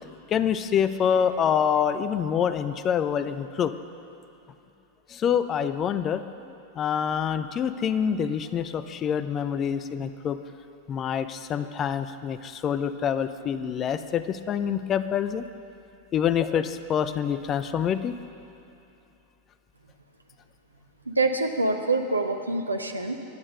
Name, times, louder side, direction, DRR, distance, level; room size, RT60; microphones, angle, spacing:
voice 1, 0.0-3.7 5.1-10.4 10.9-15.5 16.1-18.2, left 8 dB, 30° left, 12 dB, 0.7 m, -26 dB
voice 2, 21.0-23.2, right 2 dB, 80° right, 5 dB, 1.1 m, -25 dB
23.5 x 8.8 x 6.5 m, 2.9 s
figure-of-eight pair, 90°, 0 cm